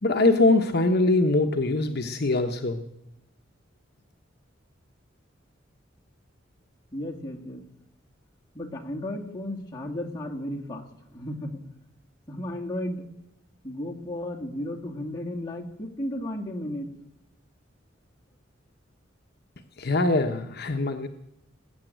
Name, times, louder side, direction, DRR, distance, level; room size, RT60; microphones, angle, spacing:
voice 1, 0.0-2.8 19.8-21.1, left 2 dB, 55° left, 4 dB, 0.9 m, -22 dB
voice 2, 6.9-7.6 8.5-10.9 11.1-11.6 12.3-13.0 13.6-16.9, left 1 dB, 20° left, -2 dB, 2.3 m, -34 dB
20.0 x 7.9 x 9.1 m, 0.87 s
head